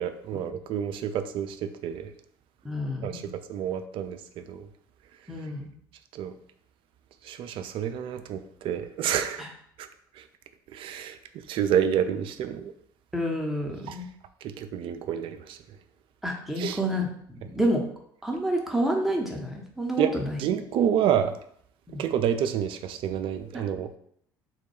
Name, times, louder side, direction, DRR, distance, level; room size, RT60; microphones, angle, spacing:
voice 1, 0.0-2.1 3.0-4.7 6.1-6.3 7.2-9.4 9.8-9.9 10.2-10.3 10.7-11.2 11.5-12.7 13.9-14.0 14.4-15.6 16.6-16.8 20.0-21.3 22.0-24.0, right 9 dB, 50° right, 8 dB, 0.4 m, -29 dB
voice 2, 2.6-3.3 5.3-5.7 9.4-9.5 13.1-14.1 16.2-17.8 18.2-20.4 21.9-22.0, equal, ahead, 0 dB, 0.8 m, -29 dB
3.8 x 2.2 x 4.4 m, 0.67 s
figure-of-eight pair, 60°, 12 cm